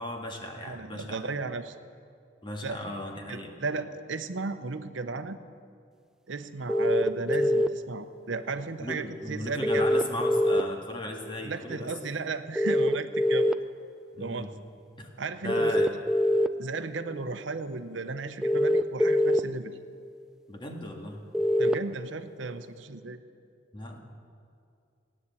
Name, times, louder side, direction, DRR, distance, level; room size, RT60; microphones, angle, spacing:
voice 1, 0.0-1.2 2.4-3.5 8.8-11.9 14.1-14.5 15.0-15.1 15.4-15.9 20.5-21.2 23.7-24.0, left 1 dB, 25° left, 2 dB, 1.7 m, -36 dB
voice 2, 0.6-1.7 2.6-2.8 3.3-5.4 6.3-9.9 11.4-13.6 14.2-14.5 15.2-15.7 16.6-19.7 21.6-23.2, right 4 dB, 80° right, 10 dB, 0.8 m, -35 dB
sound 1, 6.7-7.7 9.6-10.6 12.6-13.5 15.5-16.5 18.4-19.4 21.3-21.7, left 1 dB, 5° right, 0.4 m, -23 dB
16.0 x 9.9 x 8.3 m, 2.4 s
head